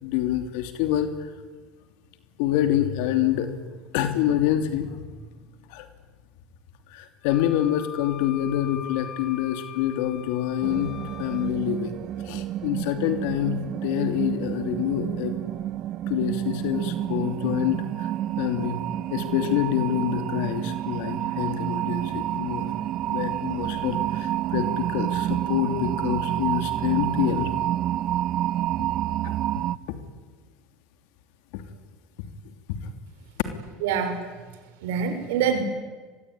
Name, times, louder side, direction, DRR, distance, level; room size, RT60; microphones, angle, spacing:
voice 1, 0.0-1.1 2.4-3.7 3.9-4.9 5.7-5.9 6.9-10.9 11.2-12.0 12.2-15.3 16.1-18.1 18.4-18.8 19.1-22.7 23.1-27.5 29.2-29.3 29.9-30.0 31.5-31.6 32.7-32.8, left 11 dB, 75° left, 8 dB, 3.0 m, -26 dB
Wind instrument woodwind instrument, 7.2-11.5, left 9 dB, 40° left, 2.4 m, -41 dB
sound 1, 10.6-29.8, right 12 dB, 55° right, 1.0 m, -29 dB
voice 2, 33.8-34.2 34.8-35.6, right 7 dB, 85° right, 7 dB, 5.8 m, -25 dB
25.5 x 21.5 x 9.8 m, 1.4 s
supercardioid pair, 105°, 0 cm